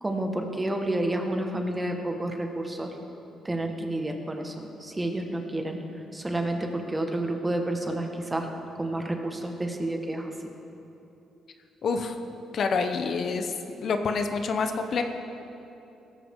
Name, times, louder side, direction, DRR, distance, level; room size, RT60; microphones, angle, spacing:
voice 1, 0.0-2.9 3.4-4.5 4.8-5.8 6.1-8.5 8.8-10.3, right 1 dB, 15° right, 3 dB, 1.6 m, -30 dB
voice 2, 11.8-12.2 12.5-13.5 13.8-15.0, left 4 dB, 55° left, 6 dB, 1.0 m, -27 dB
17.0 x 14.0 x 3.8 m, 2.9 s
cardioid pair, 90°, 0 cm